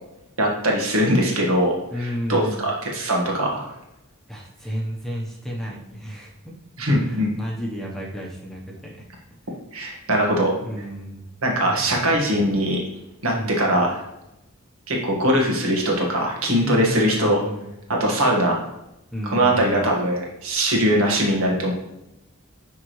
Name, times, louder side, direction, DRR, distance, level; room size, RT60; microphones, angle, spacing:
voice 1, 0.4-1.7 2.0-3.7 6.8-7.3 9.7-10.5 11.4-12.8 13.2-14.0 14.9-17.4 17.9-18.6 19.3-21.7, equal, 80° right, -1 dB, 1.7 m, -21 dB
voice 2, 1.9-2.6 4.3-6.5 6.9-9.0 10.6-11.2 11.7-12.4 13.3-13.8 16.6-17.7 19.1-19.9, equal, ahead, -2 dB, 0.9 m, -32 dB
10.5 x 3.7 x 3.2 m, 0.90 s
head